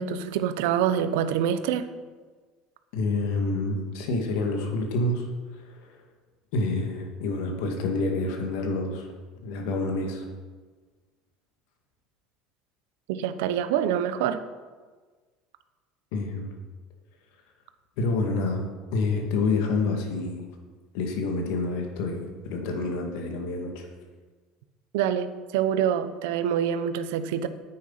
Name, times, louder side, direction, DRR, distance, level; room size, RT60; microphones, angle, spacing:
voice 1, 0.0-1.9 13.1-14.4 24.9-27.5, right 9 dB, 80° right, 11 dB, 0.8 m, -26 dB
voice 2, 2.9-5.2 5.5-5.9 6.5-9.1 9.4-10.2 16.1-16.6 18.0-18.6 18.9-20.5 20.9-23.9, left 3 dB, 75° left, 3 dB, 2.1 m, -28 dB
9.4 x 9.3 x 5.6 m, 1.4 s
supercardioid pair, 100°, 0 cm